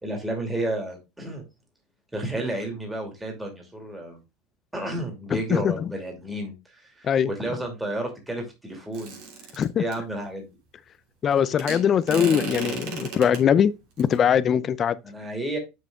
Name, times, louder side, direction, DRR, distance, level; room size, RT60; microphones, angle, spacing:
voice 1, 0.0-1.5 2.1-4.2 4.7-9.2 9.8-10.5 11.4-11.6 15.0-15.6, right 1 dB, 10° right, 2.5 m, -32 dB
voice 2, 5.3-5.9 7.0-7.3 9.6-9.8 11.2-15.0, left 8 dB, 30° left, 0.5 m, -22 dB
sound 1, 8.9-10.0 11.6-13.4 14.0-14.2, right 5 dB, 70° right, 2.9 m, -34 dB
6.5 x 6.5 x 3.6 m
supercardioid pair, 125°, 0 cm